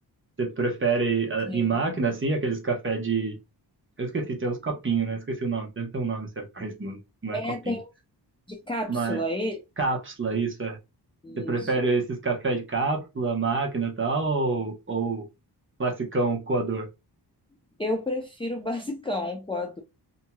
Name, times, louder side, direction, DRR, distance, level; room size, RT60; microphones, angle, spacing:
voice 1, 0.4-3.4 4.0-7.4 7.6-7.8 8.9-9.2 9.8-10.8 11.4-15.3 15.8-16.9, right 4 dB, 30° right, 1.0 m, -27 dB
voice 2, 1.5-1.8 7.3-7.9 8.5-9.6 11.2-11.7 17.8-19.8, left 1 dB, 15° left, 0.5 m, -31 dB
2.9 x 2.7 x 2.2 m
wide cardioid pair, 115°, 41 cm